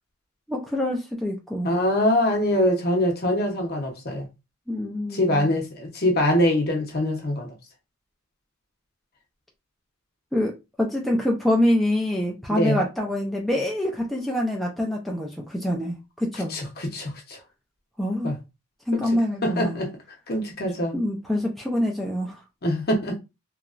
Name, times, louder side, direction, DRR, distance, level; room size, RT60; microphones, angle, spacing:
voice 1, 0.5-1.7 4.7-5.5 10.3-10.5 10.8-16.5 18.0-18.3 18.9-19.8 20.9-22.4, left 1 dB, ahead, 0.4 m, -25 dB
voice 2, 1.6-4.3 5.1-7.5 12.5-12.8 16.5-17.4 18.2-18.3 18.9-19.1 19.4-19.9 20.3-21.0 22.6-23.2, left 1 dB, 45° left, 0.9 m, -23 dB
3.0 x 2.3 x 2.4 m
head